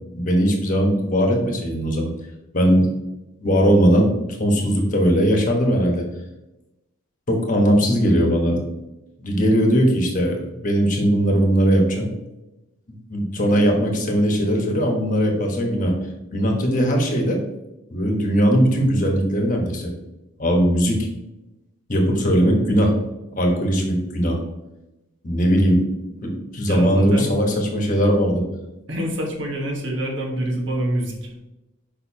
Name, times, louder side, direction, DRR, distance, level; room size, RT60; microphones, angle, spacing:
voice 1, 0.1-2.1 2.5-2.9 3.4-4.1 4.4-6.0 7.3-8.6 9.2-12.1 13.1-15.9 16.3-17.4 17.9-19.9 20.4-21.0 21.9-22.9 23.3-24.4 25.2-25.8 26.2-28.4, equal, 40° left, 1 dB, 1.2 m, -19 dB
voice 2, 26.7-27.3 28.9-31.4, right 1 dB, 60° right, 0 dB, 1.4 m, -26 dB
6.6 x 5.4 x 2.8 m, 0.98 s
head